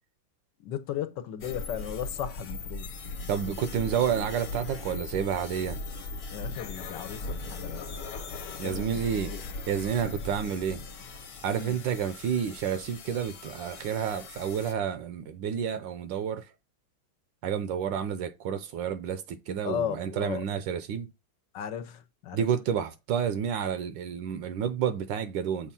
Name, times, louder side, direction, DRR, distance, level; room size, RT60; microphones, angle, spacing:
voice 1, 0.6-2.9 6.3-7.9 8.6-9.4 11.5-11.8 19.6-20.4 21.5-22.5, left 9 dB, 75° left, 1.4 m, -36 dB
sound 1, 1.4-14.7, left 3 dB, 55° left, 1.4 m, -39 dB
voice 2, 3.3-5.8 8.6-9.3 9.7-10.8 11.4-16.5 17.4-21.1 22.3-25.7, right 8 dB, 80° right, 1.3 m, -30 dB
7.2 x 2.5 x 5.5 m
omnidirectional pair, 2.0 m